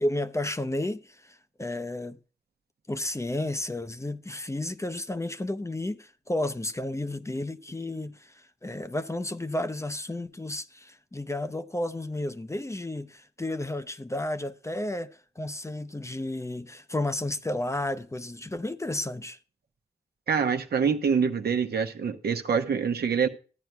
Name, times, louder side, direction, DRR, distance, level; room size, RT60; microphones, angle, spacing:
voice 1, 0.0-2.2 2.9-19.4, left 1 dB, 15° left, 0.6 m, -32 dB
voice 2, 20.3-23.3, right 6 dB, 70° right, 0.9 m, -25 dB
14.0 x 9.1 x 2.3 m
cardioid pair, 45°, 17 cm